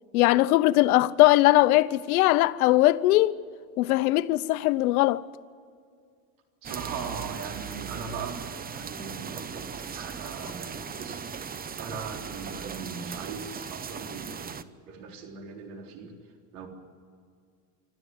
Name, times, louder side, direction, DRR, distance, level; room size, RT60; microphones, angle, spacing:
voice 1, 0.1-3.4 3.8-5.2, left 17 dB, 90° left, 0.8 m, -20 dB
sound 1, 6.6-14.6, right 6 dB, 20° right, 0.8 m, -38 dB
voice 2, 6.6-8.4 8.7-11.2 11.8-14.6 14.9-16.1 16.5-16.7, right 5 dB, 80° right, 3.9 m, -39 dB
26.0 x 13.5 x 9.3 m
supercardioid pair, 105°, 42 cm